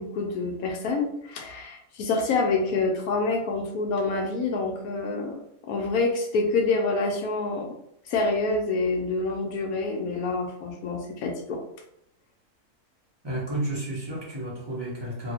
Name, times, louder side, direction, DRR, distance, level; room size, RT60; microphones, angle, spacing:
voice 1, 0.0-7.7 8.1-11.6, left 3 dB, 70° left, 2 dB, 1.0 m, -27 dB
voice 2, 13.2-15.3, right 1 dB, 20° right, -7 dB, 0.9 m, -31 dB
2.8 x 2.6 x 2.7 m, 0.78 s
omnidirectional pair, 1.7 m